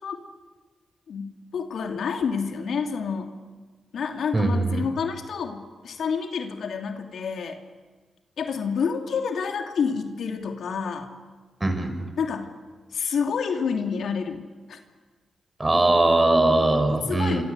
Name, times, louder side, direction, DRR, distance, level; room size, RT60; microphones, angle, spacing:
voice 1, 1.1-3.3 3.9-7.6 8.4-11.1 12.2-12.5 12.9-14.4 14.7-14.8 17.1-17.4, left 6 dB, 70° left, 5 dB, 2.9 m, -28 dB
voice 2, 4.3-4.8 11.6-11.9 15.6-17.4, right 2 dB, 25° right, 7 dB, 6.6 m, -21 dB
26.5 x 26.5 x 8.3 m, 1.4 s
supercardioid pair, 45°, 0 cm